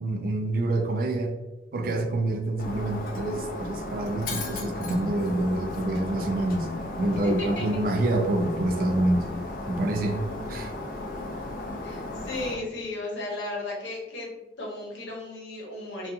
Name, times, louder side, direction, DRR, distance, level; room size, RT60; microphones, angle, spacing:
voice 1, 0.0-1.4 1.7-6.7 7.0-9.3 9.7-10.7, right 1 dB, 50° right, 4 dB, 0.3 m, -27 dB
Shatter, 2.6-12.5, left 2 dB, 50° left, 0.4 m, -35 dB
voice 2, 11.8-16.1, left 2 dB, 85° left, -2 dB, 0.9 m, -35 dB
2.4 x 2.3 x 2.7 m, 1.0 s
head